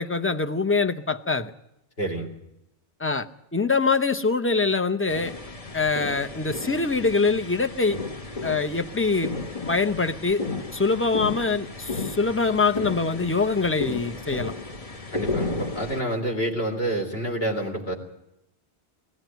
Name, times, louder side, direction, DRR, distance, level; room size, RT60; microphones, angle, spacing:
voice 1, 0.0-1.5 3.0-3.3 3.5-5.3 5.7-8.0 8.4-9.3 9.7-10.5 10.7-14.5, left 4 dB, 15° left, 8 dB, 0.7 m, -24 dB
voice 2, 2.0-2.3 15.1-17.9, right 1 dB, 60° left, 1 dB, 3.8 m, -28 dB
sound 1, 5.1-16.0, left 3 dB, 35° left, 1.1 m, -34 dB
19.5 x 14.5 x 9.2 m, 0.86 s
omnidirectional pair, 1.1 m